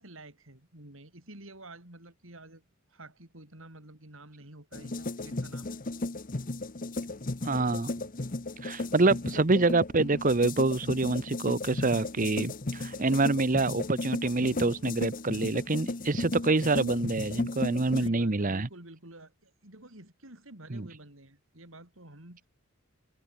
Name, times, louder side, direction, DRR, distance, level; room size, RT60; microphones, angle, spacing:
voice 1, 0.0-5.7 18.0-22.5, right 2 dB, 65° right, 5.2 m, -50 dB
sound 1, 4.7-18.1, left 2 dB, 40° left, 1.0 m, -35 dB
voice 2, 7.4-7.9 8.6-18.7 20.7-20.9, right 3 dB, 40° right, 0.9 m, -26 dB
head